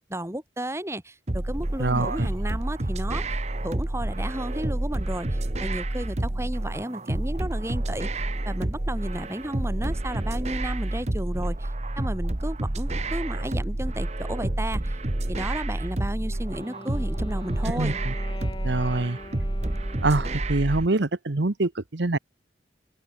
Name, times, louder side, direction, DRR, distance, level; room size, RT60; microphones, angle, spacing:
voice 1, 0.1-3.4 3.6-15.0 15.3-18.0, right 1 dB, 15° right, 3.2 m, -33 dB
sound 1, 1.3-20.9, right 1 dB, 40° right, 1.2 m, -29 dB
voice 2, 1.8-2.3 17.7-18.1 18.6-19.2 20.0-22.2, right 2 dB, 80° right, 1.2 m, -25 dB
Wind instrument woodwind instrument, 16.2-20.8, left 1 dB, 25° left, 2.9 m, -44 dB
head